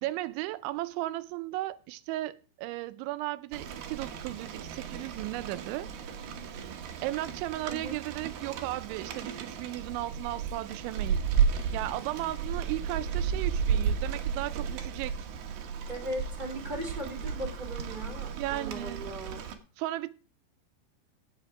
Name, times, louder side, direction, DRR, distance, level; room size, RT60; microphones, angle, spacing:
voice 1, 0.0-5.9 6.5-6.6 7.0-11.3 11.7-15.3 18.4-19.1 19.8-20.1, right 16 dB, 85° right, 3.0 m, -35 dB
Rain, 3.5-19.5, right 7 dB, 65° right, 2.4 m, -33 dB
voice 2, 15.9-19.4, right 1 dB, 10° right, 2.9 m, -38 dB
16.0 x 6.6 x 4.8 m
omnidirectional pair, 5.2 m